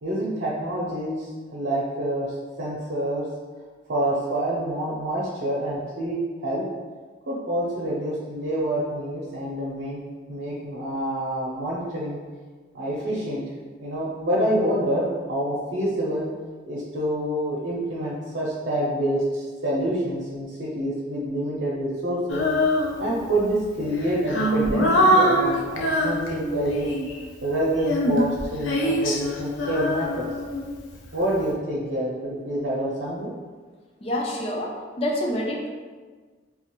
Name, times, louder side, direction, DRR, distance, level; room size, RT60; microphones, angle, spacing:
voice 1, 0.0-2.3 2.6-3.3 3.9-6.6 7.3-10.0 10.3-12.2 12.7-13.4 13.8-16.3 16.7-22.5 23.0-26.9 27.4-30.3 31.1-33.3, right 1 dB, 75° right, -7 dB, 0.7 m, -27 dB
Female singing, 22.3-23.4 23.9-27.2 27.8-31.0, equal, 80° left, 0.5 m, -23 dB
voice 2, 34.0-35.7, left 1 dB, 30° left, -1 dB, 0.5 m, -27 dB
3.7 x 2.5 x 2.9 m, 1.4 s
head